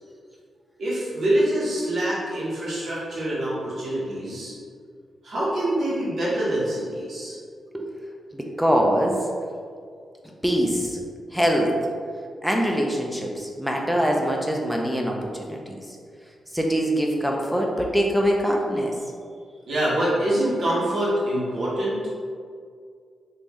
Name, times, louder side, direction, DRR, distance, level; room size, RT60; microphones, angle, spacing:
voice 1, 0.8-4.5 5.2-7.3 19.7-22.0, right 1 dB, 65° right, -8 dB, 1.2 m, -25 dB
voice 2, 8.3-9.2 10.4-11.0 11.3-11.8 12.4-15.8 16.5-18.9, equal, 5° right, 0 dB, 0.5 m, -23 dB
3.4 x 2.6 x 3.0 m, 2.1 s
supercardioid pair, 50°, 0 cm